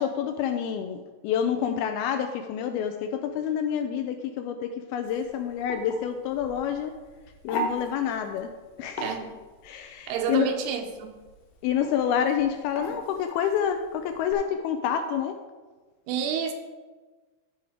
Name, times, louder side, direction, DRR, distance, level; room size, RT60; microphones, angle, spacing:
voice 1, 0.0-6.9 7.4-8.5 8.8-9.2 9.6-10.5 11.6-15.4, left 8 dB, 80° left, 6 dB, 2.3 m, -28 dB
sound 1, 5.0-14.3, left 1 dB, 65° left, 2.7 m, -39 dB
voice 2, 9.0-9.3 10.1-11.1 16.1-16.5, right 7 dB, 80° right, 5 dB, 2.8 m, -29 dB
12.5 x 4.7 x 4.9 m, 1.3 s
omnidirectional pair, 4.8 m